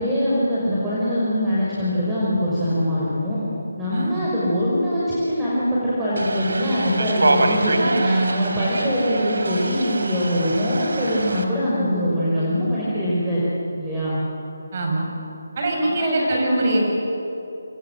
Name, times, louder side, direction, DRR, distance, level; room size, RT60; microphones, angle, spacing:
voice 1, 0.0-3.4 3.8-13.4 13.8-14.2 16.0-16.8, equal, 10° right, -10 dB, 5.8 m, -23 dB
voice 2, 3.9-4.2 7.9-8.6 14.7-15.1 15.6-16.9, right 2 dB, 40° right, 0 dB, 7.7 m, -23 dB
sound 1, 6.2-11.4, right 2 dB, 75° right, 3.4 m, -25 dB
29.5 x 26.0 x 7.7 m, 2.9 s
figure-of-eight pair, 160°, 0 cm